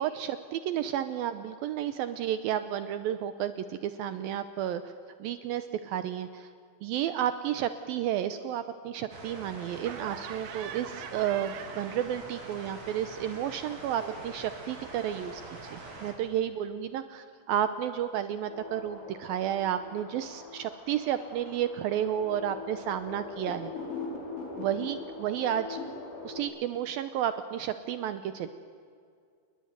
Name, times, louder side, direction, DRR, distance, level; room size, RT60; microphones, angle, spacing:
voice 1, 0.0-4.9 5.2-6.5 6.8-15.4 15.7-23.7 24.5-25.8 26.2-28.5, right 10 dB, 90° right, 11 dB, 2.1 m, -32 dB
sound 1, 9.1-16.1, right 2 dB, 40° right, 5.0 m, -44 dB
Laughter, 9.8-12.5 12.8-15.7, right 9 dB, 75° right, 3.4 m, -46 dB
sound 2, 18.5-26.4, left 3 dB, 80° left, 7.4 m, -42 dB
28.0 x 21.5 x 9.3 m, 2.3 s
omnidirectional pair, 5.2 m